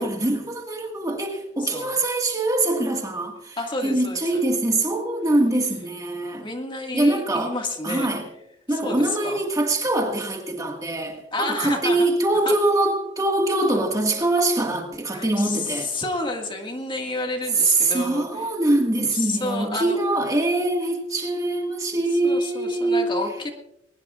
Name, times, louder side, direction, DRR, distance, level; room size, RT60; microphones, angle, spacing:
voice 1, 0.0-3.6 3.8-6.5 6.9-7.5 7.8-8.2 8.7-15.9 17.6-23.2, right 2 dB, 20° right, 1.7 m, -23 dB
voice 2, 1.6-2.0 3.6-4.4 6.4-8.1 8.7-9.4 11.3-12.1 12.4-12.5 15.1-18.5 19.1-20.0 22.1-23.5, left 2 dB, 25° left, 1.9 m, -30 dB
21.0 x 19.5 x 2.4 m
head